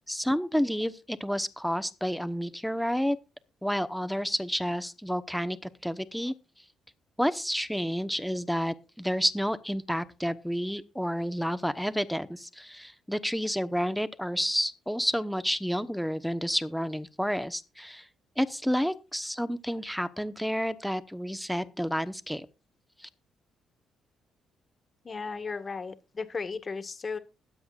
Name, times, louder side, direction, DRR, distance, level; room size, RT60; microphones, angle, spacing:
voice 1, 0.1-3.2 3.6-6.3 7.2-18.1 18.4-22.5 23.0-23.1, equal, ahead, 1.0 m, -30 dB
voice 2, 25.0-27.2, left 4 dB, 35° left, 1.7 m, -35 dB
21.0 x 7.9 x 2.4 m
cardioid pair, 90°, 0 cm